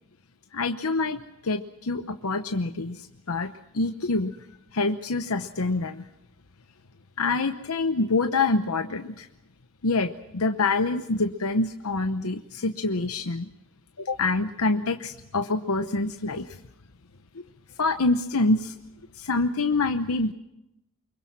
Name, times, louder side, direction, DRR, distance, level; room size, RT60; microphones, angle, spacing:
voice 1, 0.5-4.4 4.7-6.0 7.2-9.3 9.8-13.5 14.0-16.5 17.3-17.4 17.8-18.7 19.2-20.3, left 3 dB, 90° left, 7 dB, 0.9 m, -26 dB
25.0 x 22.5 x 6.1 m, 0.86 s
head